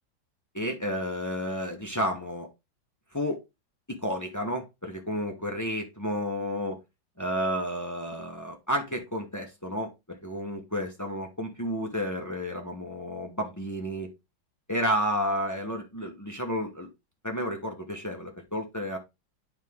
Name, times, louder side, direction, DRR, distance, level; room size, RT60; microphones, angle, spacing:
voice 1, 0.5-2.5 3.1-3.4 3.9-6.8 7.2-14.1 14.7-16.9 17.2-19.0, equal, 25° left, 3 dB, 0.4 m, -31 dB
9.5 x 3.7 x 3.5 m, 0.23 s
omnidirectional pair, 2.1 m